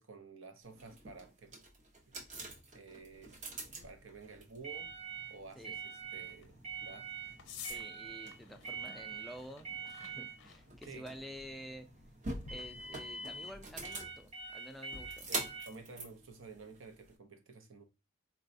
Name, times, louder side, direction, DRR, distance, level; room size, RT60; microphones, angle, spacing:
voice 1, 0.0-1.6 2.1-2.5 2.7-3.4 3.8-4.9 5.3-6.6 6.8-7.1 10.9-11.1 15.3-17.8, right 4 dB, 75° right, 0.6 m, -52 dB
sound 1, 0.7-17.1, right 4 dB, 35° right, 0.6 m, -44 dB
sound 2, 3.0-13.9, left 6 dB, 90° left, 0.6 m, -56 dB
voice 2, 7.6-11.9 12.5-15.3, equal, ahead, 0.3 m, -50 dB
3.9 x 2.2 x 2.5 m
head